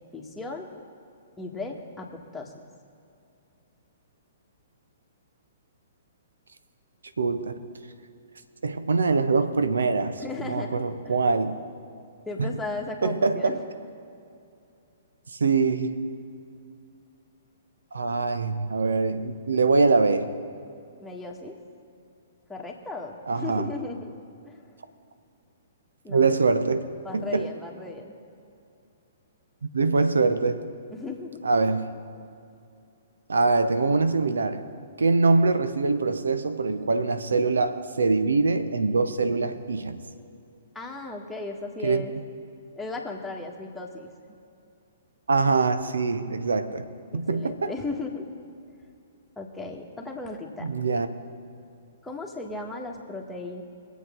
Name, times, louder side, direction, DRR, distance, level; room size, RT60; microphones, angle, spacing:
voice 1, 0.1-0.7 1.4-2.5 10.1-11.2 12.3-13.6 21.0-21.5 22.5-24.1 24.4-24.6 26.0-26.3 27.0-28.2 30.9-31.4 40.8-42.1 42.8-44.1 47.1-48.3 49.4-50.7 52.0-53.6, left 3 dB, 5° left, -1 dB, 1.6 m, -36 dB
voice 2, 7.2-7.6 8.6-11.6 12.4-12.6 13.0-13.6 15.3-16.0 17.9-20.3 23.3-23.7 26.1-26.9 27.1-27.5 29.6-30.7 31.4-31.9 33.3-34.6 35.0-40.0 41.8-42.2 45.3-47.7 50.6-51.1, right 4 dB, 70° right, 10 dB, 0.8 m, -24 dB
23.5 x 8.2 x 3.7 m, 2.6 s
figure-of-eight pair, 115°, 0 cm